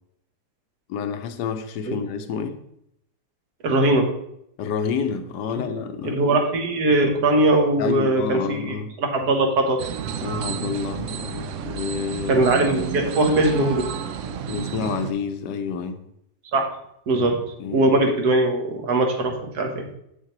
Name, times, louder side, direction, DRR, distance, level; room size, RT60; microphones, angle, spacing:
voice 1, 0.9-2.6 4.6-6.2 7.8-8.9 10.2-12.5 14.5-16.0 17.1-17.3 17.6-17.9, left 6 dB, 80° left, 1.2 m, -29 dB
voice 2, 3.6-4.1 5.5-5.6 6.0-9.8 12.3-13.9 16.5-16.6 17.1-17.4 17.7-19.9, right 2 dB, 65° right, 1.5 m, -20 dB
sound 1, 9.8-15.1, right 7 dB, 85° right, 0.6 m, -31 dB
7.2 x 6.6 x 3.0 m
omnidirectional pair, 1.9 m